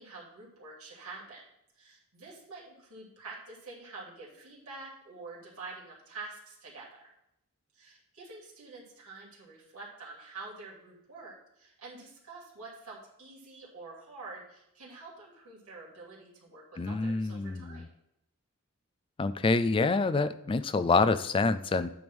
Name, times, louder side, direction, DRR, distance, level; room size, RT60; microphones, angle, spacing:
voice 1, 0.0-1.4 1.7-7.1 7.7-17.9, right 3 dB, 75° right, -5 dB, 2.8 m, -47 dB
voice 2, 16.8-17.9 19.2-21.9, left 3 dB, 25° left, 12 dB, 0.3 m, -27 dB
9.3 x 3.5 x 6.0 m, 0.82 s
head